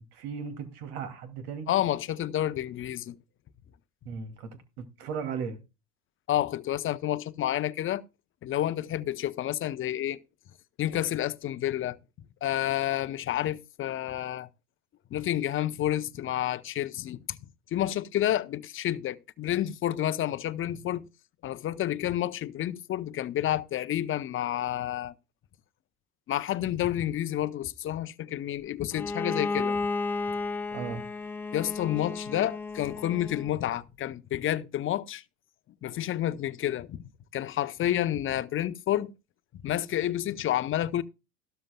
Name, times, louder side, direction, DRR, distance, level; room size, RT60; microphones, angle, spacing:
voice 1, 0.1-1.7 4.1-5.6 30.7-31.0, right 6 dB, 65° right, 2.6 m, -36 dB
voice 2, 1.7-3.2 6.3-8.0 8.4-10.2 10.8-12.0 12.4-14.5 15.1-17.4 17.7-21.1 21.4-25.1 26.3-29.8 31.5-35.2 35.8-39.1 39.6-41.0, left 12 dB, 25° left, 0.7 m, -29 dB
Bowed string instrument, 28.9-33.6, left 3 dB, 5° left, 1.1 m, -33 dB
13.5 x 12.5 x 2.2 m
hypercardioid pair, 85°, 49 cm